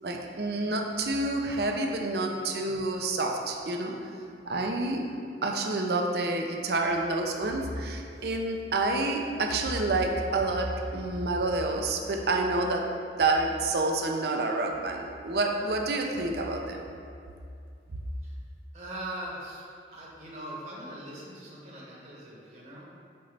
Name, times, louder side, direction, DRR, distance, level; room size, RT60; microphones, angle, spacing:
voice 1, 0.0-3.9 4.4-5.0 5.4-12.8 13.2-16.8, right 2 dB, 65° right, 2 dB, 0.6 m, -28 dB
voice 2, 18.7-19.7 19.9-22.9, right 1 dB, 40° right, -4 dB, 1.1 m, -41 dB
7.8 x 4.0 x 3.3 m, 2.4 s
head